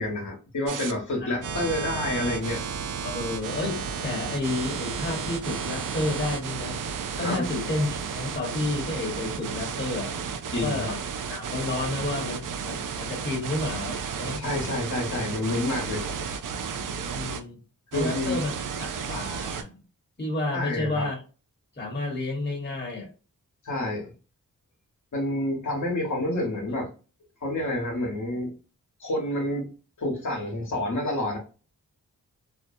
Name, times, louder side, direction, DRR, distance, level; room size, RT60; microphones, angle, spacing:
voice 1, 0.0-2.6 7.2-7.5 10.5-11.0 14.4-16.1 17.9-18.4 20.5-21.1 23.6-24.1 25.1-26.9 27.4-28.5 29.0-29.7 30.0-31.4, left 1 dB, 60° left, 1.1 m, -28 dB
sound 1, 0.7-0.9 1.4-17.4 17.9-19.6, right 6 dB, 65° right, 0.5 m, -33 dB
voice 2, 3.0-6.8 7.2-10.1 10.6-11.0 11.3-14.4 17.1-17.6 17.9-19.8 20.2-21.2 21.8-23.1, left 2 dB, 30° left, 1.1 m, -31 dB
2.6 x 2.1 x 2.6 m
cardioid pair, 60°, 34 cm